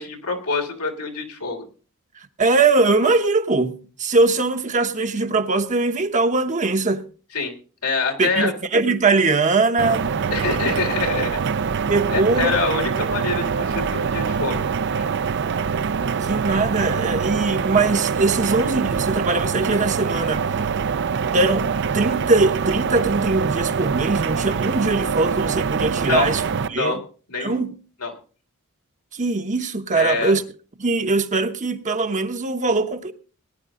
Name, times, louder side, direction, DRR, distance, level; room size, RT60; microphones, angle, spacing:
voice 1, 0.0-1.6 7.3-7.5 7.8-8.5 10.3-11.4 12.1-14.7 14.9-15.1 26.1-26.3 26.7-27.0 27.3-27.6 28.0-28.1 29.9-30.4, left 4 dB, 90° left, 3.1 m, -25 dB
voice 2, 2.4-7.0 8.2-10.1 11.9-12.6 16.2-20.5 21.3-21.6 21.9-26.4 26.7-27.0 27.4-27.7 29.1-30.4 30.8-33.1, right 3 dB, 35° right, 1.1 m, -21 dB
sound 1, 9.8-26.7, right 6 dB, 55° right, 0.5 m, -24 dB
19.0 x 10.0 x 3.8 m
head